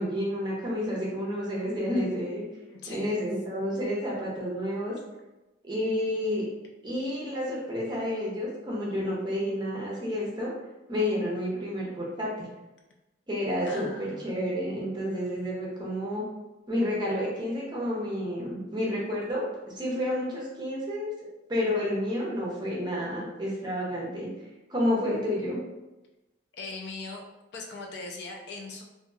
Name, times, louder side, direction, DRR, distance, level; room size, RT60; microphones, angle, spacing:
voice 1, 0.0-2.4 2.9-5.0 5.6-6.4 6.8-10.5 10.9-12.5 13.3-16.2 16.7-19.4 19.7-21.1 21.5-24.3 24.7-25.6, left 1 dB, 25° right, -5 dB, 0.7 m, -30 dB
voice 2, 2.7-3.1 13.6-14.7 26.5-27.2 27.5-28.8, left 3 dB, 60° left, 1 dB, 0.4 m, -40 dB
2.8 x 2.7 x 2.3 m, 1.0 s
head